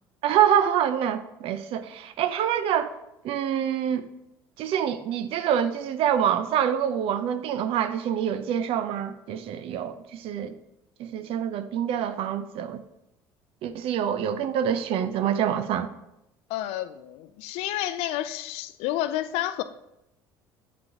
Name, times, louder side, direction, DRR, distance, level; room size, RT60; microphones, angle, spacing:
voice 1, 0.2-2.9 3.2-4.0 4.6-10.6 11.0-12.8 13.6-15.9, right 9 dB, 60° right, 0.6 m, -26 dB
voice 2, 16.5-19.6, left 13 dB, 70° left, 0.4 m, -30 dB
7.9 x 5.1 x 2.8 m
hypercardioid pair, 75°, 11 cm